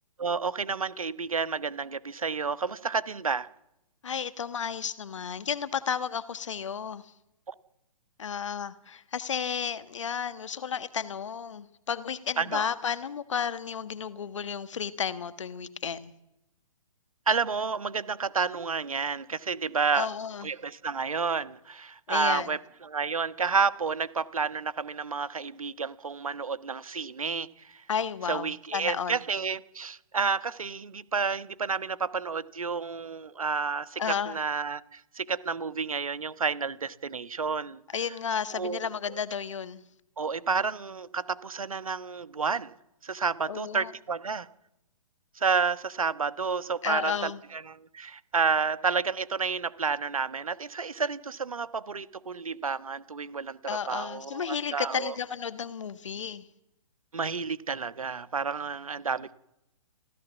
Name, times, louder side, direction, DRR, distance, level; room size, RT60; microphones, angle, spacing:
voice 1, 0.2-3.5 7.5-7.6 12.4-12.6 17.3-20.1 20.4-27.8 28.3-37.8 38.5-38.8 40.2-42.7 43.0-44.5 45.3-55.1 57.1-59.3, right 5 dB, 65° right, 15 dB, 1.3 m, -30 dB
voice 2, 4.0-7.1 8.2-16.1 19.9-20.5 22.1-22.5 27.9-29.2 34.0-34.4 37.9-39.8 43.5-43.9 46.8-47.4 53.7-56.5, left 7 dB, 55° left, 14 dB, 1.5 m, -32 dB
28.5 x 16.0 x 7.2 m, 0.87 s
figure-of-eight pair, 125°, 19 cm